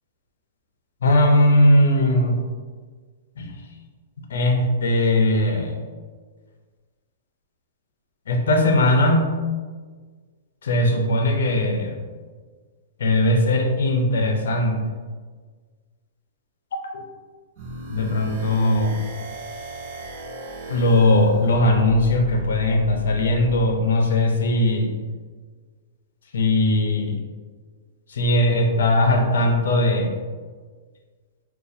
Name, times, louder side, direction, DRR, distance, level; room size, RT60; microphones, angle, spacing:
voice 1, 1.0-2.4 3.4-3.5 4.3-5.7 8.3-9.3 10.6-12.0 13.0-14.8 16.9-17.0 17.9-19.0 20.7-24.9 26.3-27.2 28.1-30.2, left 1 dB, 80° left, 3 dB, 0.5 m, -19 dB
sound 1, 17.6-23.5, left 1 dB, 35° right, 0.5 m, -35 dB
4.0 x 2.3 x 2.6 m, 1.5 s
hypercardioid pair, 170°, 0 cm